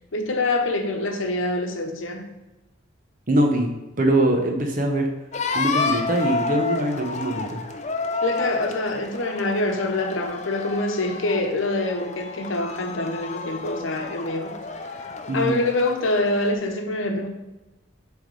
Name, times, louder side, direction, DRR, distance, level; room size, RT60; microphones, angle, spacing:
voice 1, 0.1-2.3 8.2-14.6 15.3-17.3, left 2 dB, 75° left, 4 dB, 0.9 m, -25 dB
voice 2, 3.3-3.7 4.0-5.1 5.5-7.6 15.3-15.6, right 1 dB, 40° right, 3 dB, 0.9 m, -22 dB
sound 1, 5.3-16.5, left 4 dB, 35° left, 0.5 m, -30 dB
8.0 x 3.6 x 4.7 m, 1.1 s
head